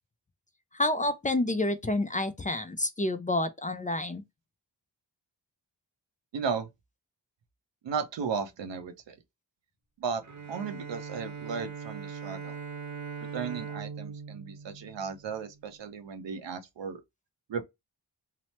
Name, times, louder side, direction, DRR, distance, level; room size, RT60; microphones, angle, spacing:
voice 1, 0.7-4.2, left 2 dB, 20° left, 0.4 m, -29 dB
voice 2, 6.3-6.7 7.8-9.2 10.0-10.2 10.5-12.6 13.2-17.0 17.5-17.6, right 6 dB, 90° right, 0.7 m, -35 dB
Bowed string instrument, 10.2-15.6, right 5 dB, 40° right, 0.8 m, -41 dB
2.9 x 2.0 x 2.9 m
cardioid pair, 60°, 43 cm